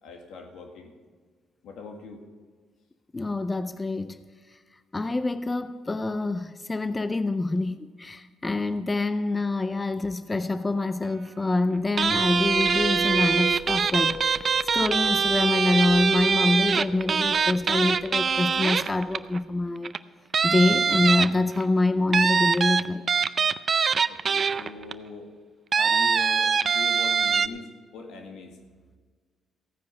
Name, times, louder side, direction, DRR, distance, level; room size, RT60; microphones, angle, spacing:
voice 1, 0.0-0.9 1.6-2.2 24.1-25.3 25.7-28.6, left 3 dB, 80° left, 1.9 m, -41 dB
voice 2, 3.1-4.2 4.9-14.5 14.7-20.0 20.4-23.0, left 2 dB, 20° left, 0.5 m, -26 dB
sound 1, 11.9-19.5, equal, 25° right, 1.7 m, -41 dB
sound 2, 12.0-19.4 19.8-20.0 20.3-21.6 22.1-24.9 25.7-27.5, right 6 dB, 45° right, 0.5 m, -23 dB
15.5 x 9.6 x 5.7 m
cardioid pair, 90°, 0 cm